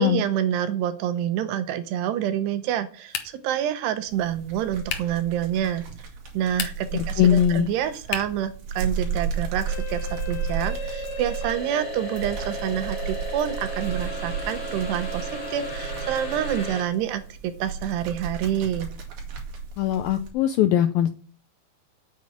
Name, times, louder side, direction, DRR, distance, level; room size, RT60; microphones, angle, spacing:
voice 1, 0.0-5.8 6.3-18.9, right 10 dB, 80° right, 11 dB, 2.9 m, -27 dB
sound 1, 3.1-3.6 4.9-5.2 6.4-7.0 8.1-8.5, left 8 dB, 65° left, 2.3 m, -32 dB
sound 2, 4.1-20.3, right 6 dB, 60° right, 3.6 m, -34 dB
voice 2, 6.9-7.7 19.8-21.1, left 10 dB, 80° left, 9 dB, 2.1 m, -21 dB
sound 3, 9.7-16.8, left 1 dB, 35° left, 3.7 m, -35 dB
8.7 x 7.6 x 8.8 m, 0.42 s
omnidirectional pair, 4.9 m